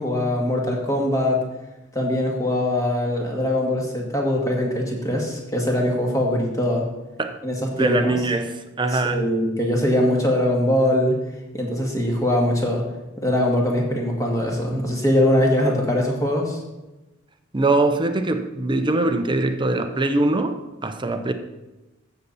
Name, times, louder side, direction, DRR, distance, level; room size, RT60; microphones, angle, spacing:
voice 1, 0.0-1.4 1.9-6.8 7.4-8.2 8.9-11.2 11.5-12.8 13.2-16.6, left 1 dB, 15° left, -1 dB, 2.1 m, -22 dB
voice 2, 7.7-9.3 17.5-21.3, right 2 dB, 25° right, 7 dB, 0.7 m, -22 dB
15.0 x 6.9 x 4.2 m, 1.0 s
head